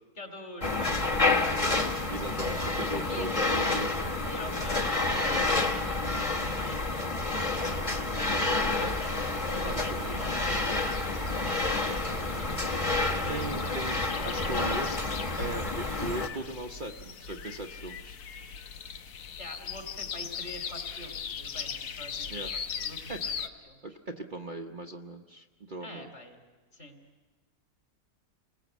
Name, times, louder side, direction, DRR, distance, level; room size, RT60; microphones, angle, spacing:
voice 1, 0.2-1.9 3.1-5.8 6.1-7.3 7.6-8.5 8.8-9.1 9.7-9.9 10.2-11.2 11.5-14.3 19.4-23.4 23.6-23.8 25.8-26.4 26.7-27.0, left 1 dB, 40° left, 5 dB, 3.5 m, -44 dB
sound 1, 0.6-16.3, left 2 dB, 20° left, 1.5 m, -29 dB
voice 2, 2.1-3.9 8.8-9.0 9.5-10.4 13.3-14.9 15.4-18.2 22.3-22.5 23.1-23.2 23.8-26.1, right 2 dB, 35° right, 2 dB, 1.0 m, -38 dB
sound 2, 8.6-23.5, left 6 dB, 80° left, 1.6 m, -40 dB
29.0 x 20.5 x 8.2 m, 1.3 s
omnidirectional pair, 1.6 m